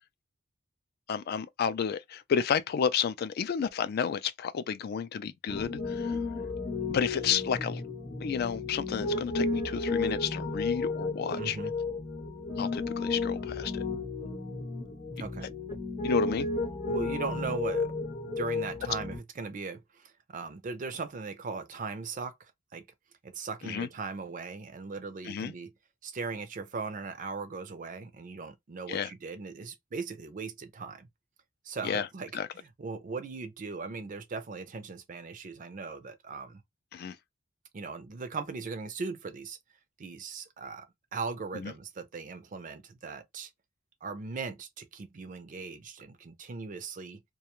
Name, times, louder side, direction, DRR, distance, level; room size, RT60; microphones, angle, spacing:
voice 1, 1.1-6.2 6.9-7.8 8.2-11.6 12.6-13.8 16.0-16.5 23.6-23.9 25.2-25.5 28.9-29.1 31.8-32.1 32.3-32.5 36.9-37.2 41.5-41.7, left 7 dB, 50° left, 0.3 m, -31 dB
Piano, 5.5-19.2, left 3 dB, 35° left, 0.7 m, -33 dB
voice 2, 11.4-11.7 15.2-15.5 16.9-17.9 18.2-22.9 23.2-25.7 26.0-31.1 31.6-36.6 37.7-39.6 40.0-43.5 44.0-47.2, right 4 dB, 40° right, 0.4 m, -39 dB
2.4 x 2.2 x 2.9 m
head